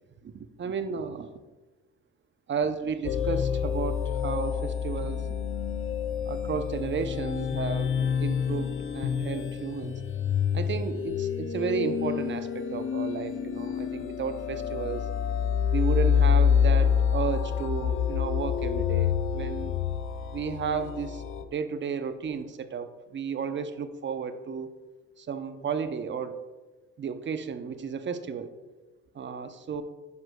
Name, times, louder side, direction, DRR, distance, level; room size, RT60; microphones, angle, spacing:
voice 1, 0.2-1.3 2.5-5.3 6.3-10.0 10.5-15.1 15.7-19.7 20.3-21.2 21.5-24.7 25.2-26.4 27.0-28.5 29.1-29.8, right 6 dB, 35° right, 10 dB, 0.6 m, -33 dB
sound 1, 3.0-21.4, left 7 dB, 35° left, 0.4 m, -27 dB
9.4 x 6.1 x 2.2 m, 1.2 s
cardioid pair, 85°, 35 cm